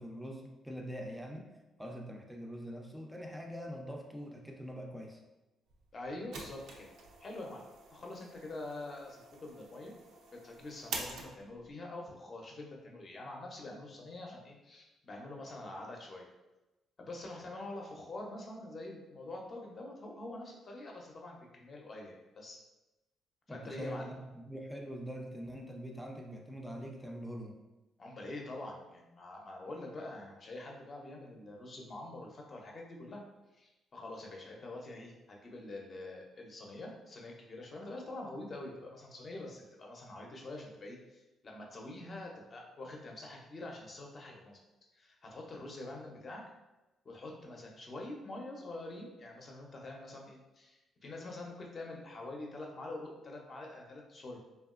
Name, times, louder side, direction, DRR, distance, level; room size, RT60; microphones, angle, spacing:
voice 1, 0.0-1.5 1.8-5.2 23.5-27.6, equal, 5° right, 1 dB, 0.4 m, -43 dB
sound 1, 5.7-11.7, right 4 dB, 80° right, 0.4 m, -47 dB
voice 2, 5.9-6.9 7.2-7.6 7.9-9.9 10.3-16.3 17.0-22.6 23.5-24.1 28.0-33.2 33.5-44.6 44.9-46.4 47.0-54.4, left 2 dB, 40° left, 0 dB, 0.6 m, -45 dB
2.9 x 2.3 x 2.4 m, 1.0 s
cardioid pair, 90°, 0 cm